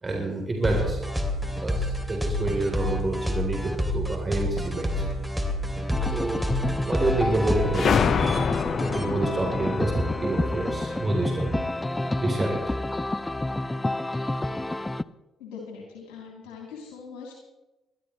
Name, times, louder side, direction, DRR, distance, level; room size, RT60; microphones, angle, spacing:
voice 1, 0.0-1.0 1.6-5.1 6.0-6.5 6.8-11.6 12.2-12.8, right 2 dB, 30° right, 0 dB, 3.7 m, -28 dB
sound 1, 0.6-9.0, left 1 dB, ahead, 2.9 m, -29 dB
sound 2, 5.9-15.0, left 1 dB, 15° left, 0.6 m, -29 dB
sound 3, 7.7-12.2, left 6 dB, 55° left, 0.6 m, -27 dB
voice 2, 15.4-17.3, left 5 dB, 75° left, -2 dB, 3.1 m, -41 dB
22.0 x 13.0 x 3.2 m, 1.0 s
hypercardioid pair, 50°, 0 cm